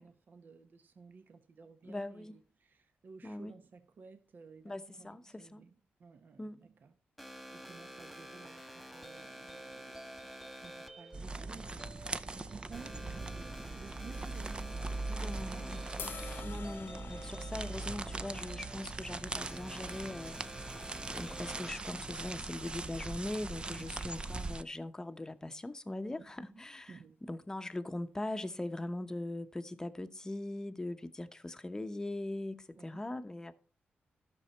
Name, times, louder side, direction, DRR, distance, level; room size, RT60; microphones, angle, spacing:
voice 1, 0.0-7.0 7.5-12.0 12.3-14.8 15.2-16.2 23.7-24.0 26.2-27.2 32.7-33.1, right 5 dB, 60° right, 1.0 m, -55 dB
voice 2, 1.9-2.3 3.2-3.5 4.6-5.6 6.4-6.6 15.1-16.1 16.4-20.4 21.1-26.9 27.2-33.5, left 1 dB, 15° left, 0.8 m, -41 dB
sound 1, 7.2-21.7, right 1 dB, 5° right, 1.6 m, -50 dB
sound 2, 11.1-24.6, right 3 dB, 25° right, 0.6 m, -41 dB
sound 3, 16.0-22.2, left 7 dB, 70° left, 0.8 m, -51 dB
13.0 x 6.2 x 4.4 m
cardioid pair, 100°, 4 cm